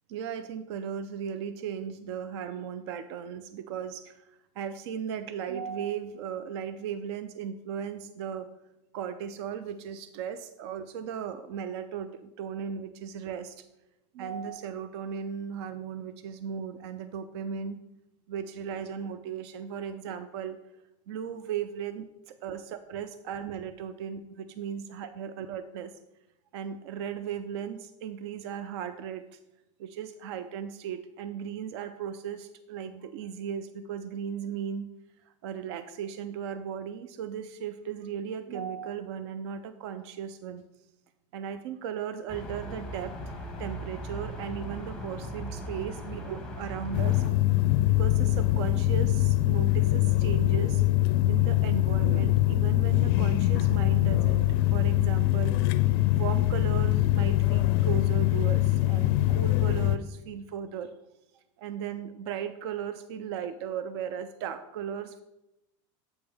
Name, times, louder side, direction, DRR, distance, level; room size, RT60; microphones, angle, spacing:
voice 1, 0.1-4.2 4.6-8.5 8.9-13.6 14.1-17.8 18.3-20.6 21.1-25.9 26.5-29.4 29.8-34.9 35.4-40.6 41.3-47.2 47.9-50.8 51.3-55.6 56.1-60.9 61.3-65.2, right 8 dB, 60° right, 11 dB, 0.4 m, -36 dB
sound 1, 42.3-47.3, equal, 5° left, 0.7 m, -38 dB
sound 2, 46.9-60.0, left 15 dB, 50° left, 0.4 m, -23 dB
7.9 x 5.2 x 3.4 m, 0.91 s
supercardioid pair, 165°, 16 cm